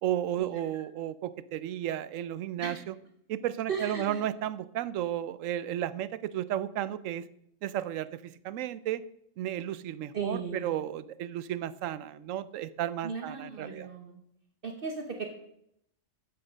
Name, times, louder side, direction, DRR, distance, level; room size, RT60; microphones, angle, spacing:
voice 1, 0.0-2.9 3.3-7.2 7.6-9.0 9.4-13.9, right 11 dB, 85° right, 16 dB, 1.0 m, -33 dB
voice 2, 3.7-4.2 10.1-10.7 13.0-14.2 14.6-15.3, right 5 dB, 50° right, 4 dB, 1.1 m, -36 dB
8.6 x 6.9 x 6.3 m, 0.74 s
omnidirectional pair, 1.3 m